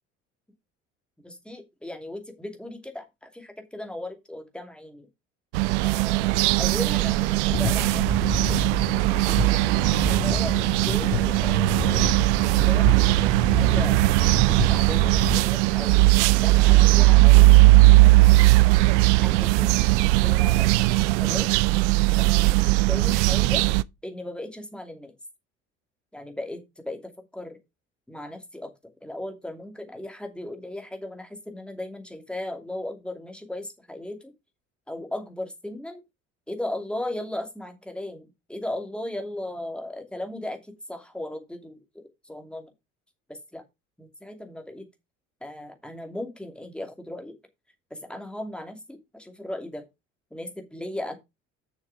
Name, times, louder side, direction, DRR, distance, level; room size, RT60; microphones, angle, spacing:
voice 1, 1.2-5.1 5.8-8.6 9.6-12.1 12.5-14.0 14.7-16.1 16.4-17.6 19.2-21.5 22.2-22.6 22.9-23.7 24.0-25.1 26.1-26.6 26.8-27.6 28.1-28.7 29.0-34.3 34.9-36.0 36.5-42.7 43.3-43.6 44.0-44.9 45.4-47.3 47.9-49.8 50.3-51.2, left 1 dB, 5° left, 5 dB, 2.5 m, -37 dB
sound 1, 5.5-23.8, right 20 dB, 65° right, 0.5 m, -19 dB
sound 2, 7.5-15.4, left 3 dB, 25° left, 2.7 m, -31 dB
7.1 x 6.3 x 4.8 m, 0.22 s
figure-of-eight pair, 60°, 38 cm